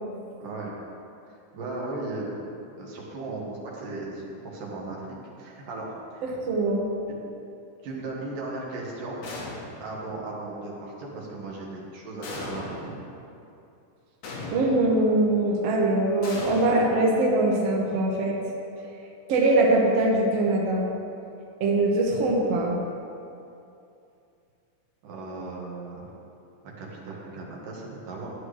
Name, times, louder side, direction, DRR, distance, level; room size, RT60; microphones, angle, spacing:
voice 1, 0.4-0.7 1.5-2.4 2.8-6.2 7.1-7.2 7.8-9.2 9.8-13.0 25.0-26.1 26.6-28.3, right 2 dB, 75° right, -3 dB, 3.1 m, -36 dB
voice 2, 6.2-6.9 14.5-18.4 19.3-20.8 21.6-22.8, right 2 dB, 55° right, -3 dB, 2.0 m, -22 dB
sound 1, 9.2-10.0 12.2-13.0 14.2-15.0 16.2-17.4, left 2 dB, 75° left, 3.2 m, -37 dB
13.5 x 9.6 x 3.3 m, 2.6 s
omnidirectional pair, 3.9 m